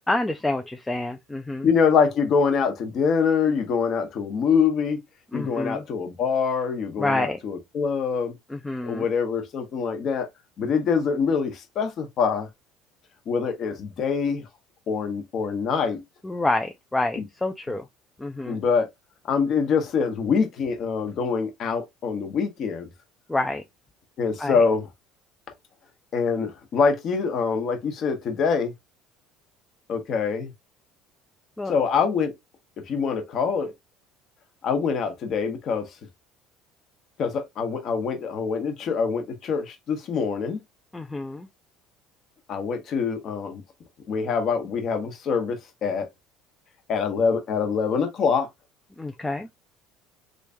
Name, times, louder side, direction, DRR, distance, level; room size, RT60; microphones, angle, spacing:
voice 1, 0.1-1.7 5.3-5.8 7.0-7.4 8.5-9.0 16.2-17.9 18.2-18.6 23.3-23.6 24.4-24.6 31.6-31.7 40.9-41.5 49.0-49.5, left 2 dB, 10° left, 0.3 m, -28 dB
voice 2, 1.6-5.0 5.3-8.3 8.8-10.3 10.6-12.5 13.3-14.4 14.9-16.0 17.2-17.3 18.5-18.9 19.3-22.9 24.2-24.9 26.1-28.7 29.9-30.5 31.7-32.3 32.9-33.7 34.6-35.9 37.2-40.6 42.5-43.6 44.1-46.1 46.9-48.5, left 5 dB, 45° left, 1.0 m, -24 dB
3.1 x 2.6 x 3.4 m
cardioid pair, 135°, 0 cm